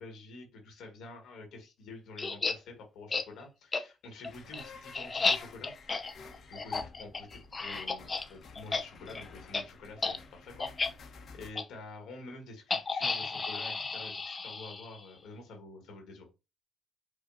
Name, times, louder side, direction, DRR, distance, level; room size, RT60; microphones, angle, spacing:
voice 1, 0.0-16.3, left 3 dB, 80° left, 3 dB, 1.4 m, -48 dB
sound 1, 2.2-2.6 3.1-3.3 3.7-3.8 4.2-8.3 8.6-8.8 9.1-9.2 9.5-9.6 10.0-10.2 10.6-10.9 11.6-11.7 12.7-15.1, left 4 dB, 30° left, 0.5 m, -33 dB
sound 2, 4.2-11.5, left 4 dB, 60° left, 0.9 m, -52 dB
5.1 x 2.3 x 2.6 m, 0.27 s
cardioid pair, 90°, 0 cm